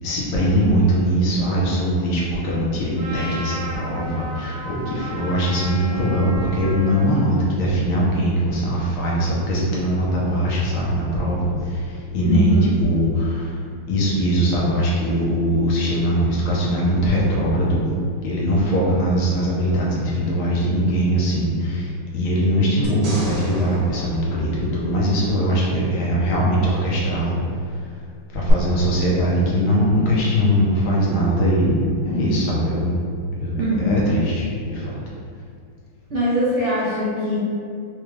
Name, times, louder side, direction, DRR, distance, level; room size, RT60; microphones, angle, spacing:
voice 1, 0.0-13.6 13.9-17.8 18.2-27.4 28.3-33.0 33.4-35.0, equal, 75° left, -5 dB, 1.5 m, -21 dB
Trumpet, 3.0-7.2, right 1 dB, 10° right, 1.0 m, -33 dB
voice 2, 12.3-12.7 33.6-34.1 36.1-37.4, left 1 dB, 50° right, -12 dB, 0.8 m, -21 dB
sound 1, 22.8-25.3 28.5-28.6, right 2 dB, 70° right, 1.8 m, -34 dB
4.8 x 2.3 x 3.1 m, 2.3 s
omnidirectional pair, 2.3 m